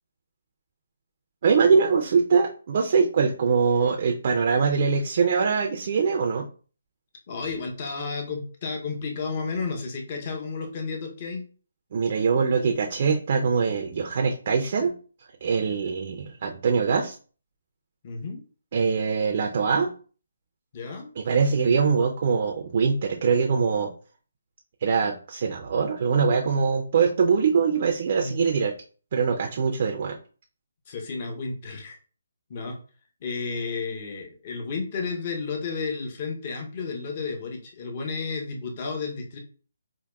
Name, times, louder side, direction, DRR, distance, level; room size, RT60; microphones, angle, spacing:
voice 1, 1.4-6.5 11.9-14.9 15.4-17.2 18.7-19.9 21.2-23.9 24.8-28.7 29.1-30.2, right 5 dB, 45° right, 2 dB, 0.4 m, -23 dB
voice 2, 7.3-11.5 18.0-18.4 20.7-21.1 28.2-28.5 30.9-32.0 32.5-32.8 33.2-39.4, left 4 dB, 35° left, 3 dB, 0.7 m, -32 dB
4.5 x 2.2 x 2.2 m, 0.40 s
hypercardioid pair, 155°, 0 cm